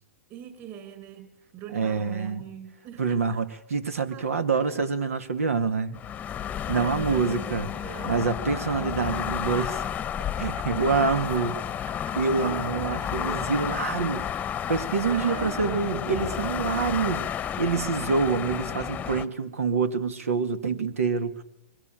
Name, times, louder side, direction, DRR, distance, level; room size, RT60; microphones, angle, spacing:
voice 1, 0.3-3.2 4.1-4.9 6.7-8.2 10.5-10.6 11.0-11.5 11.8-13.4 15.1-16.0, right 9 dB, 35° right, 7.6 m, -42 dB
voice 2, 1.7-2.4 3.0-6.0 6.7-7.7 8.1-9.8 10.4-11.6 12.2-14.3 14.7-17.3 17.6-21.4, right 5 dB, 85° right, 2.2 m, -26 dB
sound 1, 5.9-19.2, left 9 dB, 20° left, 0.9 m, -31 dB
24.0 x 22.0 x 9.1 m
hypercardioid pair, 130°, 7 cm